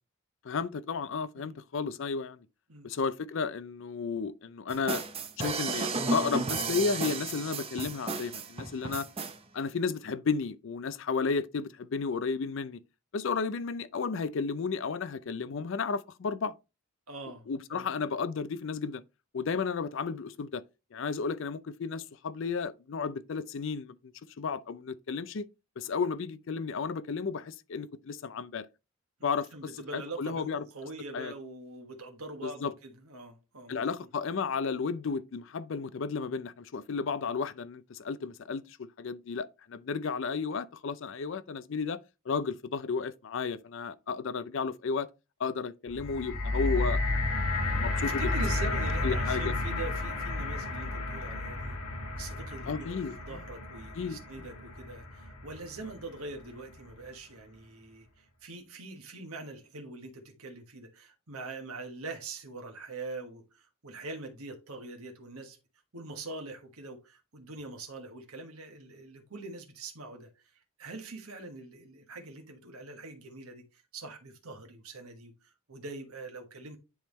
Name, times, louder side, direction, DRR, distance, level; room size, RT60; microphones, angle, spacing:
voice 1, 0.4-2.4 2.8-5.0 5.4-9.1 9.5-12.8 13.1-16.5 17.5-19.0 19.3-20.6 20.9-24.0 24.4-25.5 25.8-28.7 29.2-29.5 29.9-30.6 31.1-31.3 32.4-32.7 33.7-42.0 42.3-45.1 45.4-47.0 47.6-48.2 49.0-49.5 52.7-53.4 53.9-54.5, left 5 dB, 60° left, 0.4 m, -33 dB
sound 1, 4.7-9.4, right 3 dB, 25° right, 0.7 m, -33 dB
voice 2, 17.1-17.9 29.2-33.8 48.0-51.8 52.2-65.6 65.9-70.3 70.8-76.8, right 2 dB, 80° right, 1.4 m, -43 dB
sound 2, 45.9-56.1 56.9-57.0, left 2 dB, 90° left, 1.3 m, -32 dB
10.0 x 3.5 x 3.1 m
head